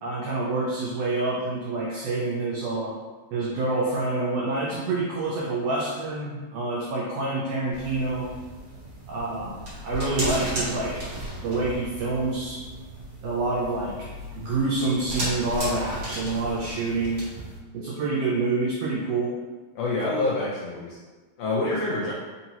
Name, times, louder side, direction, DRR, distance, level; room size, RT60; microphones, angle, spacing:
voice 1, 0.0-2.9 3.3-8.3 9.1-11.0 11.4-12.6 13.2-14.1 14.3-17.2 17.7-19.4, right 2 dB, 80° right, -4 dB, 1.5 m, -27 dB
sound 1, 7.7-17.6, right 1 dB, 45° right, 1.2 m, -35 dB
voice 2, 19.7-21.0 21.4-22.1, left 2 dB, 85° left, -5 dB, 1.4 m, -26 dB
4.5 x 2.8 x 2.8 m, 1.3 s
omnidirectional pair, 3.3 m